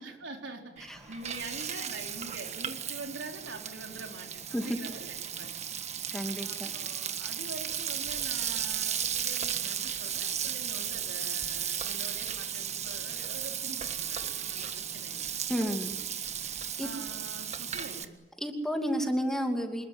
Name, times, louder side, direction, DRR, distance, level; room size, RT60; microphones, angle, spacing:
voice 1, 0.0-5.6 6.4-15.3 16.8-18.1, right 2 dB, 85° right, 3 dB, 4.3 m, -45 dB
Frying (food), 0.8-18.1, right 8 dB, 40° right, 1.5 m, -35 dB
voice 2, 6.1-6.7 15.5-15.9 16.8-16.9 18.4-19.9, equal, 5° left, 4 dB, 2.7 m, -31 dB
26.5 x 21.5 x 9.7 m, 1.2 s
head